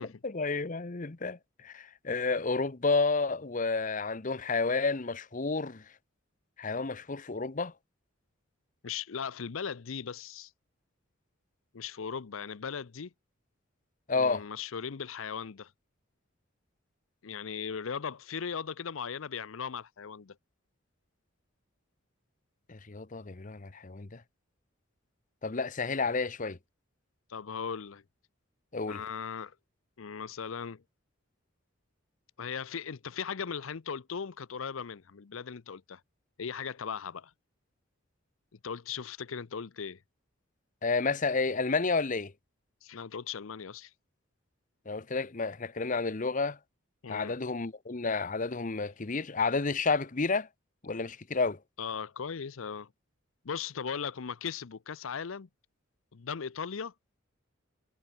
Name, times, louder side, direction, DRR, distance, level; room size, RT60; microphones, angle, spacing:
voice 1, 0.2-5.8 6.6-7.7 14.1-14.4 22.7-24.2 25.4-26.6 28.7-29.0 40.8-42.3 44.9-46.6 47.1-50.5 50.8-51.6, left 4 dB, 40° left, 0.9 m, -30 dB
voice 2, 8.8-10.5 11.7-13.1 14.1-15.7 17.2-20.4 27.3-28.0 28.9-29.5 30.0-30.8 32.4-36.0 36.4-37.3 38.6-40.0 42.8-43.9 47.0-47.4 51.8-52.9 53.4-55.5 56.1-56.9, left 6 dB, 80° left, 0.6 m, -38 dB
head